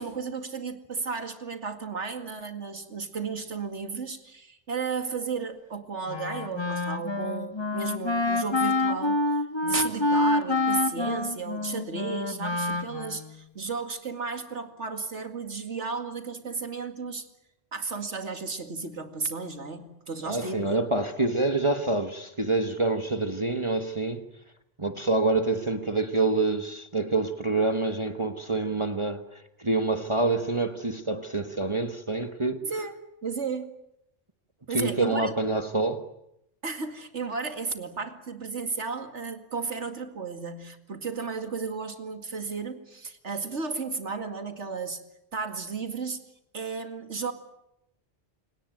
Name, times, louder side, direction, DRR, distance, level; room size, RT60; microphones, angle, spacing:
voice 1, 0.0-17.3 17.7-20.7 32.6-32.9 33.2-33.7 34.7-35.3 36.6-45.0 45.3-46.2 46.5-47.3, right 4 dB, 75° right, 2.5 m, -34 dB
Wind instrument woodwind instrument, 6.1-13.4, left 2 dB, 25° left, 1.4 m, -27 dB
voice 2, 20.3-24.2 24.8-32.7 34.7-36.1, right 2 dB, 25° right, 1.3 m, -27 dB
29.0 x 18.5 x 9.2 m
omnidirectional pair, 1.2 m